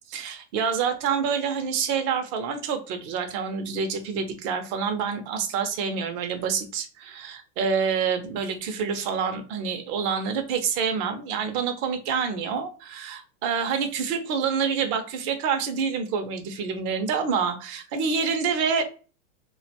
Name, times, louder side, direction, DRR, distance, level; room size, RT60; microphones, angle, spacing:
voice 1, 0.1-18.8, right 6 dB, 30° right, 6 dB, 0.5 m, -27 dB
2.3 x 2.2 x 2.7 m, 0.36 s
supercardioid pair, 145°, 36 cm